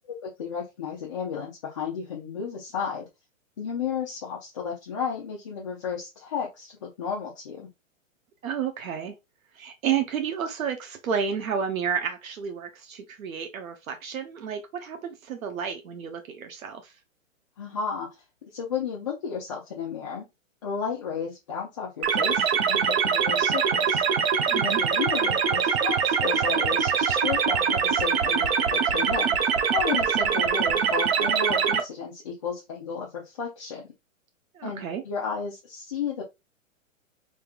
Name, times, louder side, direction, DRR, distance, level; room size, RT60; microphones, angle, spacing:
voice 1, 0.0-3.1 3.6-7.7 17.6-18.2 18.5-20.2 20.6-24.0 24.6-33.9 34.6-36.2, left 6 dB, 25° left, 0.4 m, -33 dB
voice 2, 8.4-9.1 9.6-16.9 24.5-24.8 34.5-35.0, right 7 dB, 80° right, 0.9 m, -31 dB
sound 1, 22.0-31.8, right 6 dB, 50° right, 0.7 m, -23 dB
3.6 x 2.8 x 2.4 m
hypercardioid pair, 155°, 40 cm